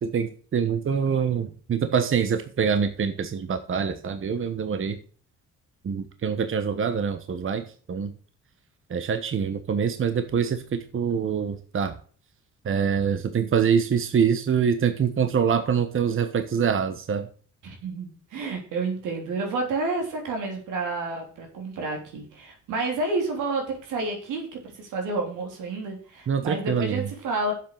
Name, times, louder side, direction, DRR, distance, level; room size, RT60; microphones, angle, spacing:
voice 1, 0.0-5.0 5.8-8.1 8.9-11.9 12.6-17.3 26.3-27.1, right 7 dB, 45° right, 9 dB, 1.1 m, -25 dB
voice 2, 17.6-27.5, right 3 dB, 90° right, 2 dB, 3.5 m, -30 dB
7.4 x 7.4 x 6.5 m, 0.43 s
cardioid pair, 90°, 30 cm